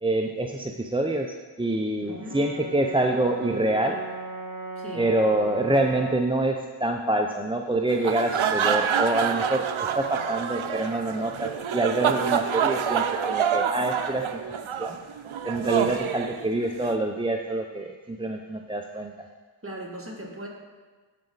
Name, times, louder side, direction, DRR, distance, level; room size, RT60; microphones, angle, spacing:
voice 1, 0.0-4.0 5.0-14.4 14.8-15.0 15.4-19.3, right 2 dB, 10° right, 3 dB, 0.4 m, -26 dB
voice 2, 2.0-2.4 4.8-5.1 19.6-20.5, right 1 dB, 30° right, -3 dB, 2.0 m, -38 dB
Brass instrument, 2.1-6.4, right 2 dB, 45° right, 1.2 m, -37 dB
sound 1, 7.9-16.9, right 7 dB, 90° right, 0.6 m, -27 dB
12.5 x 5.1 x 3.9 m, 1.4 s
wide cardioid pair, 45°, 46 cm